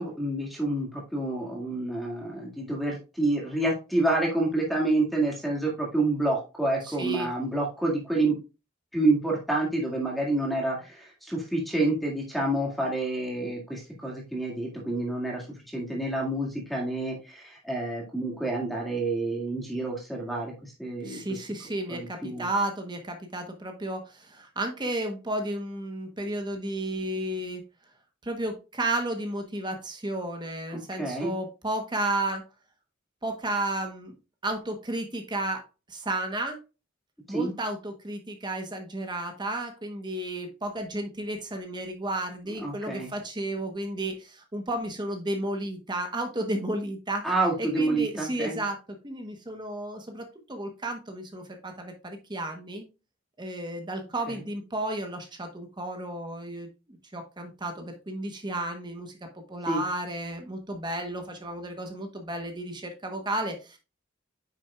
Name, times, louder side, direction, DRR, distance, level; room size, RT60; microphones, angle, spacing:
voice 1, 0.0-8.4 8.9-20.5 20.8-21.2 21.9-22.5 31.0-31.3 37.3-37.5 42.6-43.1 47.2-48.6 59.7-59.8, right 2 dB, ahead, -2 dB, 1.9 m, -28 dB
voice 2, 6.8-7.3 21.0-27.6 28.2-32.4 33.2-34.1 34.4-36.6 37.3-47.3 47.6-52.9 53.4-63.8, right 1 dB, 20° right, 5 dB, 1.0 m, -33 dB
9.0 x 6.2 x 2.3 m, 0.30 s
head